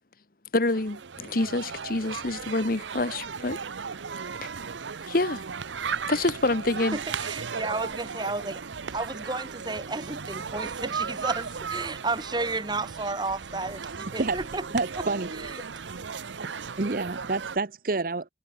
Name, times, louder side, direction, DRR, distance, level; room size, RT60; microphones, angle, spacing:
voice 1, 0.5-3.6 4.4-4.5 5.1-5.4 6.1-7.0, left 2 dB, 50° left, 1.3 m, -27 dB
sound 1, 0.7-17.6, right 6 dB, 90° right, 0.8 m, -36 dB
voice 2, 6.9-8.6 8.9-14.6 15.4-15.5, right 3 dB, 25° right, 1.9 m, -32 dB
sound 2, 9.8-14.8, equal, 70° right, 5.8 m, -54 dB
voice 3, 14.7-15.3 16.4-16.5 16.8-18.3, right 3 dB, 50° right, 0.8 m, -28 dB
head